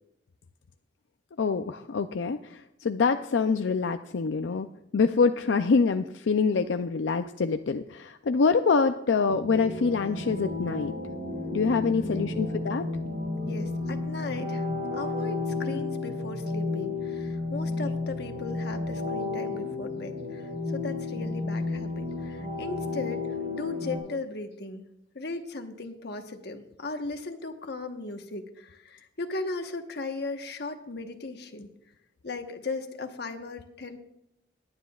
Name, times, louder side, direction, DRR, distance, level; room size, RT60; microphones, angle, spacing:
voice 1, 1.4-4.7 4.9-10.9 11.5-12.8, left 5 dB, 85° left, 8 dB, 0.5 m, -25 dB
sound 1, 9.3-24.0, left 3 dB, 55° right, 3.3 m, -32 dB
voice 2, 11.8-12.3 13.5-14.7 14.9-20.4 20.7-24.9 25.1-31.7 32.2-34.0, left 3 dB, 65° left, 5 dB, 1.2 m, -37 dB
20.5 x 9.7 x 2.4 m, 0.84 s
head